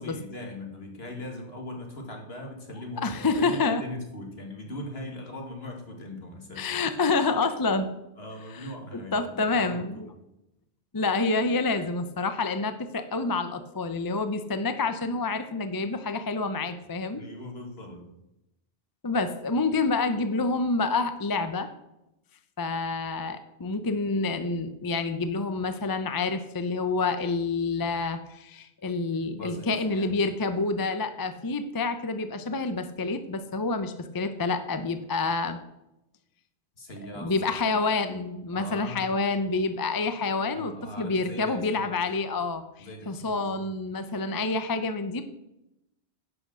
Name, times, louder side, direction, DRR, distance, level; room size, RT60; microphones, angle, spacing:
voice 1, 0.0-6.8 8.2-10.1 17.2-18.1 29.3-30.2 36.8-37.9 38.5-39.2 40.5-42.0 42.8-43.6, left 1 dB, 65° left, 2 dB, 2.3 m, -40 dB
voice 2, 3.0-3.8 6.6-7.9 8.6-8.7 9.1-9.8 10.9-17.2 19.0-21.7 22.6-35.6 37.1-40.7 41.0-45.2, left 3 dB, 25° left, 9 dB, 0.6 m, -28 dB
11.0 x 6.2 x 6.3 m, 0.88 s
omnidirectional pair, 1.1 m